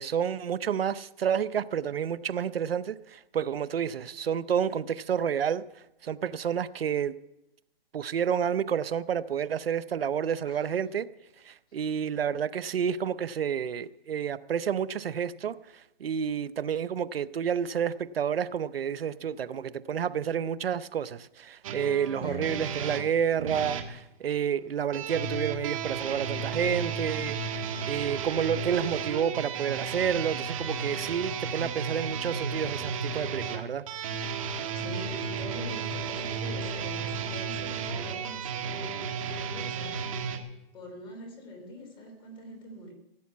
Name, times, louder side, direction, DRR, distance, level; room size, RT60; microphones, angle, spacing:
voice 1, 0.0-7.2 7.9-11.1 11.4-33.8, right 8 dB, 75° right, 16 dB, 0.7 m, -30 dB
voice 2, 10.5-10.8 22.2-22.5 34.7-40.2 40.7-42.9, left 1 dB, 15° left, 2 dB, 3.3 m, -44 dB
sound 1, 21.6-23.9 24.9-40.4, right 6 dB, 35° right, 1.6 m, -33 dB
16.5 x 8.2 x 8.4 m, 0.85 s
hypercardioid pair, 160°, 30 cm